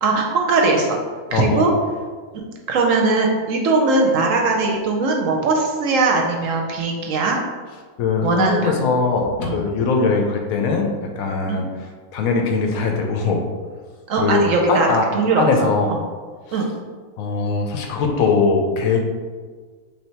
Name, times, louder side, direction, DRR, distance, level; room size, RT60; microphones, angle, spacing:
voice 1, 0.0-1.0 1.3-1.7 2.3-2.4 2.7-7.4 8.2-8.9 9.4-9.6 11.5-11.7 14.1-15.7 16.5-16.7, right 3 dB, 70° right, 1 dB, 0.9 m, -20 dB
voice 2, 1.3-1.7 8.0-11.6 12.1-13.4 14.2-15.1 15.3-15.9 17.2-19.0, left 4 dB, 75° left, 2 dB, 1.0 m, -21 dB
3.3 x 2.8 x 4.3 m, 1.5 s
omnidirectional pair, 1.6 m